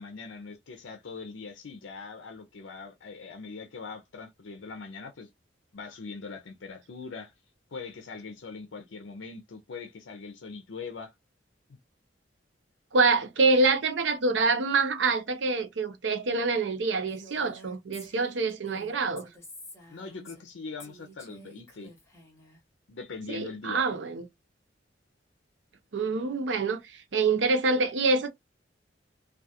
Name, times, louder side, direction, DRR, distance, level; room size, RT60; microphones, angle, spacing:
voice 1, 0.0-5.3 5.7-7.3 7.7-11.1 19.9-21.9 22.9-23.8, left 4 dB, 80° left, 0.5 m, -41 dB
voice 2, 12.9-19.3 23.3-24.2 25.9-28.3, right 3 dB, 70° right, 0.6 m, -26 dB
Female speech woman speaking, 17.1-20.5 20.8-22.6, equal, 15° left, 1.1 m, -50 dB
2.3 x 2.3 x 2.7 m
head